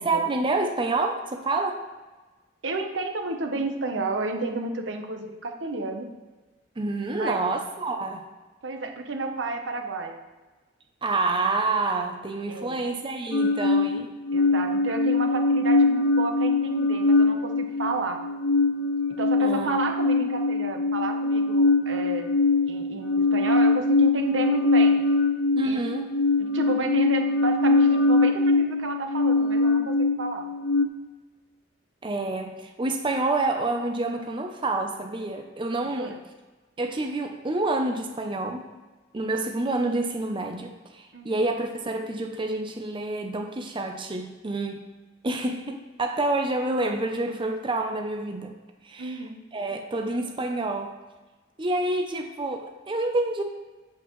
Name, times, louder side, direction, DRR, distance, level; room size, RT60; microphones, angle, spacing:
voice 1, 0.0-1.8 6.8-8.3 11.0-14.1 19.4-19.7 25.5-26.1 32.0-36.2 36.8-38.7 39.1-44.8 45.2-48.5 48.8-50.9 51.6-53.4, right 2 dB, 25° right, 4 dB, 0.6 m, -28 dB
voice 2, 2.6-6.1 7.1-7.4 8.6-10.2 12.5-12.8 14.3-18.2 19.2-22.3 22.7-25.0 25.6-25.8 26.4-30.4 35.9-36.2 41.1-41.3 49.0-49.4, right 3 dB, 85° right, 4 dB, 1.0 m, -31 dB
sound 1, 13.3-30.9, left 3 dB, 65° left, 0.5 m, -22 dB
8.0 x 7.9 x 3.1 m, 1.2 s
head